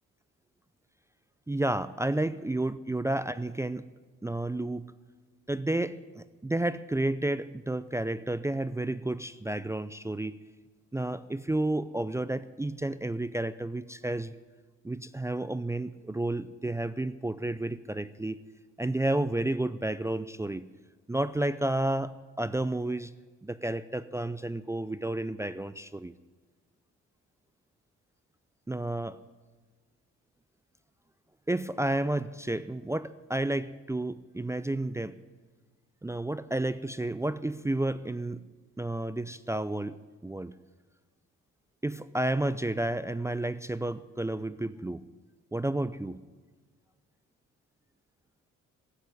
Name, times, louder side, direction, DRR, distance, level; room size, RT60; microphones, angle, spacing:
voice 1, 1.5-3.8 4.2-4.9 5.5-10.4 10.9-14.3 14.8-18.4 18.8-20.7 21.1-23.1 23.4-26.1 28.7-29.2 31.5-35.2 36.0-38.4 38.8-40.5 41.8-45.0 45.5-46.2, right 1 dB, 10° right, 13 dB, 0.5 m, -31 dB
15.0 x 8.8 x 9.7 m, 1.3 s
cardioid pair, 90°, 30 cm